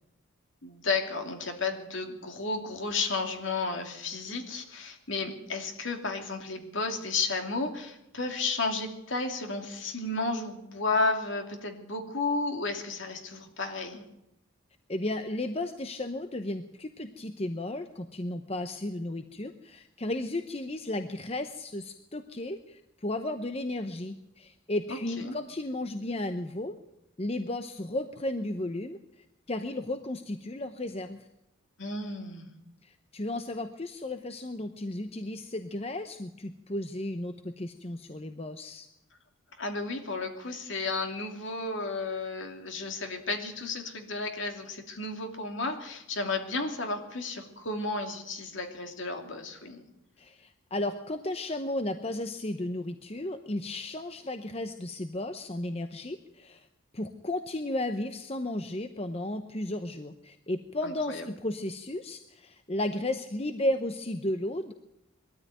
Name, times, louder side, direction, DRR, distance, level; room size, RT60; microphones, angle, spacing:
voice 1, 0.6-14.0 24.9-25.0 25.2-25.3 31.8-32.5 39.6-49.8 60.8-61.3, left 3 dB, 60° left, 4 dB, 2.7 m, -33 dB
voice 2, 14.9-26.8 27.2-31.3 32.8-38.9 50.2-56.7 56.9-64.7, left 1 dB, 30° left, 8 dB, 0.8 m, -34 dB
21.0 x 13.5 x 9.2 m, 0.87 s
head